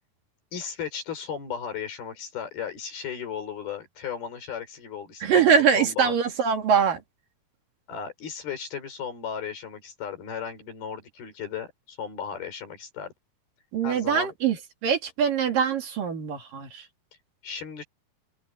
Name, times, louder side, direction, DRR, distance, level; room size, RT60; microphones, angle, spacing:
voice 1, 0.5-6.1 7.9-13.1 13.8-14.3 17.4-17.8, left 7 dB, 70° left, 6.6 m, -35 dB
voice 2, 5.2-7.0 13.7-14.6 14.8-16.9, right 7 dB, 60° right, 4.2 m, -23 dB
omnidirectional pair, 4.5 m